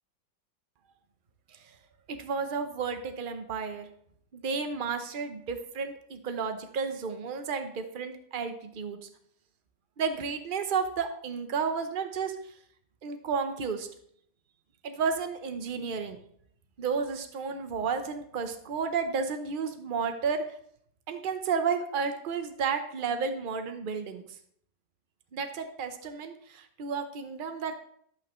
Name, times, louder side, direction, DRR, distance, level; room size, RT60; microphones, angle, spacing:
voice 1, 2.1-3.9 4.3-9.0 10.0-12.5 13.0-13.9 14.8-16.2 16.8-20.4 21.1-24.2 25.3-27.8, right 5 dB, 45° right, 7 dB, 0.7 m, -32 dB
10.5 x 8.4 x 3.1 m, 0.65 s
omnidirectional pair, 1.9 m